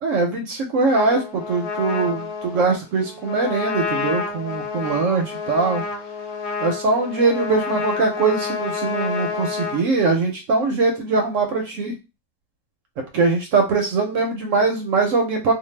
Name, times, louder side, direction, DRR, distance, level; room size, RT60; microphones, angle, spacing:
voice 1, 0.0-5.8 6.6-11.9 13.1-15.5, right 3 dB, 70° right, 3 dB, 0.8 m, -21 dB
Trumpet, 0.9-9.8, left 5 dB, 90° left, 1.2 m, -29 dB
2.6 x 2.2 x 3.1 m, 0.27 s
omnidirectional pair, 1.6 m